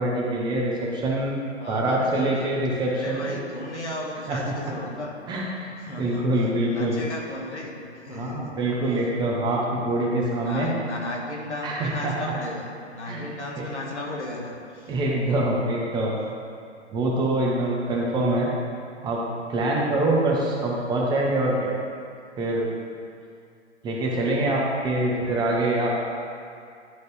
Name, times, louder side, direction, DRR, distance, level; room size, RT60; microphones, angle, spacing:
voice 1, 0.0-1.3 1.7-3.4 4.3-4.5 5.3-5.7 6.0-7.0 8.1-10.7 11.6-12.3 13.1-13.2 14.9-16.2 16.9-18.5 19.0-19.2 19.5-21.7 22.4-22.7 23.8-26.0, right 1 dB, 10° right, -3 dB, 0.8 m, -25 dB
voice 2, 1.6-2.6 3.0-5.1 5.8-8.6 10.3-15.0 24.9-25.5, left 1 dB, 70° left, -1 dB, 1.6 m, -35 dB
11.0 x 4.1 x 3.3 m, 2.4 s
figure-of-eight pair, 125°, 36 cm